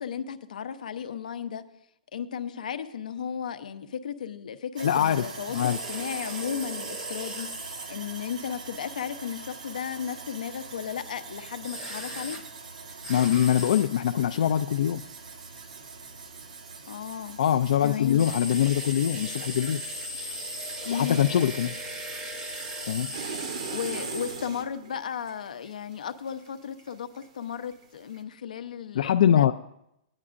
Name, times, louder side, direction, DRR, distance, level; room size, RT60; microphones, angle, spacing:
voice 1, 0.0-1.7 2.1-12.4 16.9-17.4 17.8-18.2 20.8-21.2 23.5-29.5, left 8 dB, 90° left, 9 dB, 0.7 m, -35 dB
voice 2, 4.8-5.3 5.5-5.8 13.1-15.0 17.4-19.8 20.9-21.7 22.9-23.1 23.7-23.8 28.9-29.5, left 10 dB, 65° left, 6 dB, 0.3 m, -23 dB
Sawing, 4.8-24.7, right 4 dB, 90° right, 1.3 m, -44 dB
sound 1, 5.5-7.9 11.6-12.4 13.0-13.9 18.2-24.5, right 1 dB, 15° right, 0.7 m, -37 dB
sound 2, 23.1-27.3 27.6-28.2, right 6 dB, 50° right, 0.8 m, -39 dB
17.0 x 9.7 x 2.5 m, 0.79 s
hypercardioid pair, 170°, 4 cm